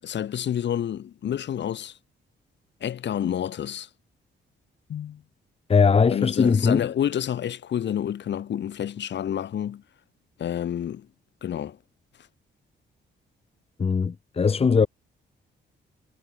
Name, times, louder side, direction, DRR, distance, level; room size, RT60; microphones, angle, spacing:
voice 1, 0.0-2.0 2.8-3.9 4.9-5.2 6.1-9.8 10.4-11.1 11.4-11.8, left 10 dB, 65° left, 6.0 m, -29 dB
voice 2, 5.7-6.9 13.8-14.9, left 5 dB, 30° left, 1.3 m, -20 dB
cardioid pair, 135°, 20 cm